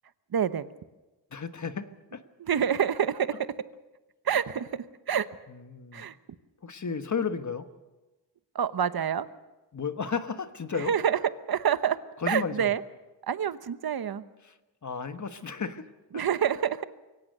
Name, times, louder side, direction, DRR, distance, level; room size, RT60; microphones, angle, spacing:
voice 1, 0.3-0.6 2.4-3.5 4.2-5.3 5.9-6.2 8.5-9.3 10.7-11.2 11.5-12.0 12.3-12.8 13.3-14.2 16.1-16.8, right 8 dB, 55° right, 13 dB, 1.0 m, -27 dB
voice 2, 1.3-2.2 5.5-6.1 6.6-7.7 9.7-10.9 12.2-12.7 14.4-14.5 14.8-16.2, left 5 dB, 40° left, 9 dB, 1.3 m, -33 dB
23.5 x 17.5 x 6.6 m, 1.1 s
wide cardioid pair, 100°, 44 cm